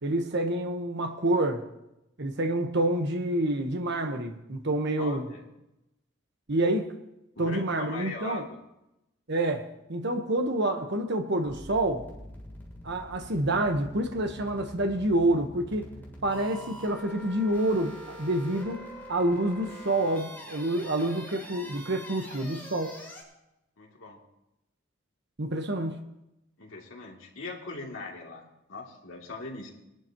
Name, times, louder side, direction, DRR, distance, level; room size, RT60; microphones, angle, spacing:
voice 1, 0.0-1.6 2.2-5.3 6.5-6.9 7.4-8.4 9.3-12.1 12.8-15.9 16.2-18.8 19.1-23.0 25.4-26.0, right 1 dB, 60° right, 5 dB, 1.2 m, -28 dB
voice 2, 5.0-5.4 7.3-8.6 23.8-24.2 26.6-29.7, left 3 dB, 80° left, -1 dB, 2.8 m, -40 dB
sound 1, 11.4-23.2, equal, 10° left, 3.2 m, -45 dB
21.5 x 11.5 x 3.0 m, 0.89 s
head